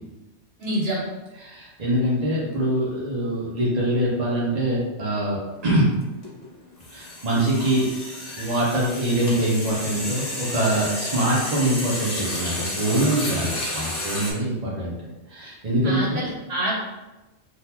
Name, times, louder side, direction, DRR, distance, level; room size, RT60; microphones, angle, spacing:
voice 1, 0.6-1.0 15.8-16.8, right 1 dB, 60° right, -6 dB, 1.1 m, -26 dB
voice 2, 1.4-5.9 6.9-7.8 8.4-14.9 15.3-16.2, right 1 dB, 35° right, -5 dB, 0.9 m, -24 dB
sound 1, 5.5-5.7 6.0-14.3, left 1 dB, 70° left, 1.3 m, -31 dB
3.7 x 2.6 x 2.9 m, 1.1 s
omnidirectional pair, 1.3 m